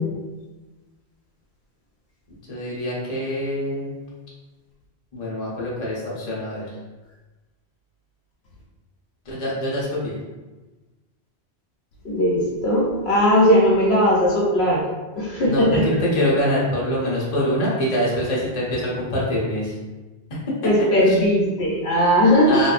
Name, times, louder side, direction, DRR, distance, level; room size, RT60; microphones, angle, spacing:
voice 1, 2.5-3.9 5.1-6.7 9.3-10.2 15.4-19.7 21.0-21.2 22.5-22.7, equal, 40° left, -6 dB, 0.8 m, -24 dB
voice 2, 12.1-14.8 15.1-15.8 20.6-22.6, equal, 70° left, -5 dB, 0.9 m, -18 dB
3.0 x 2.6 x 2.4 m, 1.2 s
omnidirectional pair, 1.1 m